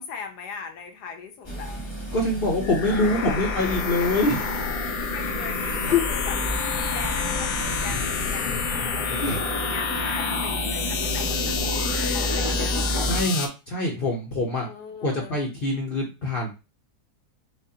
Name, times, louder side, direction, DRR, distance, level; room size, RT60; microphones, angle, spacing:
voice 1, 0.0-1.9 2.9-4.2 5.0-12.9 14.6-15.4, left 6 dB, 85° left, 5 dB, 1.3 m, -40 dB
sound 1, 1.4-13.2, right 1 dB, 25° left, 0.7 m, -32 dB
voice 2, 2.1-4.4 5.6-6.0 9.1-9.4 13.0-14.7 15.0-16.5, left 2 dB, 50° left, -1 dB, 0.6 m, -25 dB
sound 2, 2.6-13.5, left 5 dB, 70° left, 1.1 m, -28 dB
5.0 x 2.2 x 2.7 m, 0.28 s
omnidirectional pair, 1.7 m